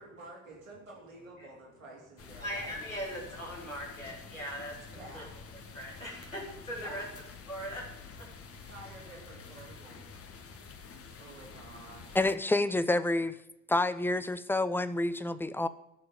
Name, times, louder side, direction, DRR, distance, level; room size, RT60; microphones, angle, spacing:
voice 1, 0.0-2.8 4.9-5.3 6.7-7.0 8.6-10.0 11.2-12.2, right 2 dB, 85° right, -3 dB, 3.8 m, -50 dB
sound 1, 2.2-12.4, left 5 dB, 35° left, 1.7 m, -49 dB
voice 2, 2.4-5.2 5.7-7.0 7.5-7.8 8.2-8.3, equal, 90° left, -3 dB, 3.3 m, -40 dB
voice 3, 12.1-13.3 13.7-15.7, left 2 dB, 5° left, 14 dB, 0.7 m, -28 dB
15.0 x 7.0 x 7.1 m, 0.88 s
figure-of-eight pair, 55°, 39 cm